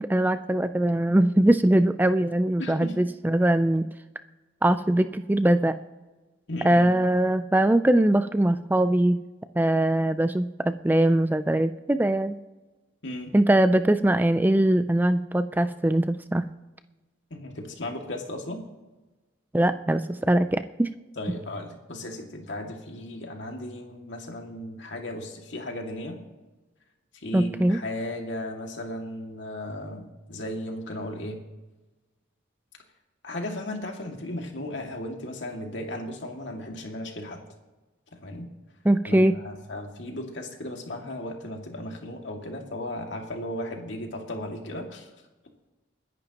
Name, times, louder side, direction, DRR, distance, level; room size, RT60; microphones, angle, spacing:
voice 1, 0.0-3.8 4.6-5.8 6.6-9.2 9.6-12.4 13.3-16.4 19.5-20.9 27.3-27.8 38.8-39.4, right 1 dB, 10° right, 11 dB, 0.4 m, -22 dB
voice 2, 2.6-3.0 6.5-6.9 13.0-13.3 17.3-18.6 21.2-26.2 27.1-31.4 33.2-37.4 38.1-38.5 39.1-45.1, left 1 dB, 80° left, 2 dB, 2.2 m, -35 dB
30.0 x 10.5 x 3.0 m, 1.2 s
head